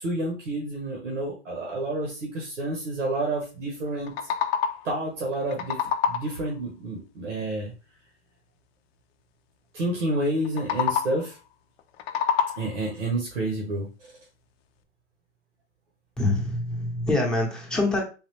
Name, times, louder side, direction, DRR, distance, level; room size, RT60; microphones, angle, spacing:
voice 1, 0.0-4.1 4.8-5.8 6.1-7.7 9.7-11.4 12.6-14.1, right 1 dB, 90° right, -2 dB, 1.4 m, -29 dB
sound 1, 3.9-5.0 5.3-6.5 10.4-11.3 11.8-12.9, left 8 dB, 60° left, 0.5 m, -28 dB
voice 2, 16.2-18.0, left 2 dB, ahead, -2 dB, 0.8 m, -25 dB
3.9 x 2.3 x 3.3 m, 0.32 s
hypercardioid pair, 130°, 36 cm